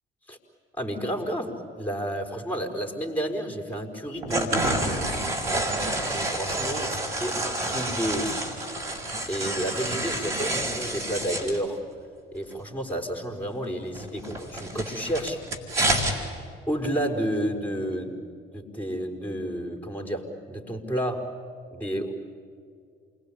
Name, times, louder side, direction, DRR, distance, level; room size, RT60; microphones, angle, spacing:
voice 1, 0.8-5.1 6.1-6.9 7.2-8.4 9.3-11.8 12.3-15.4 16.7-18.2 18.5-21.3 21.7-22.1, equal, 5° left, 3 dB, 4.6 m, -31 dB
sound 1, 4.2-11.6 14.0-16.1, right 1 dB, 85° right, 2.6 m, -28 dB
28.0 x 21.0 x 8.7 m, 2.3 s
figure-of-eight pair, 45°, 29 cm